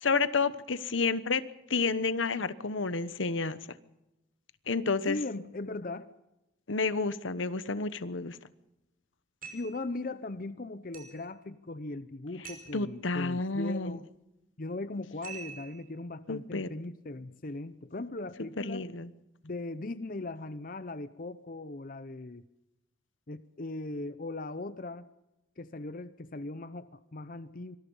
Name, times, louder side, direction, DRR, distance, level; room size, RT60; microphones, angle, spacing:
voice 1, 0.0-1.4 1.7-3.6 4.7-5.2 6.7-8.4 12.7-14.0 16.3-16.7 18.6-19.1, left 4 dB, 80° left, 15 dB, 1.1 m, -30 dB
voice 2, 5.1-6.1 9.5-14.1 14.6-18.9 19.4-22.4 23.3-25.1 25.6-27.8, left 2 dB, 45° left, 13 dB, 0.7 m, -39 dB
sound 1, 9.4-9.8 10.9-11.3 12.4-12.8 15.2-15.8, right 6 dB, 45° right, 5.8 m, -45 dB
25.0 x 20.0 x 5.6 m, 0.93 s
head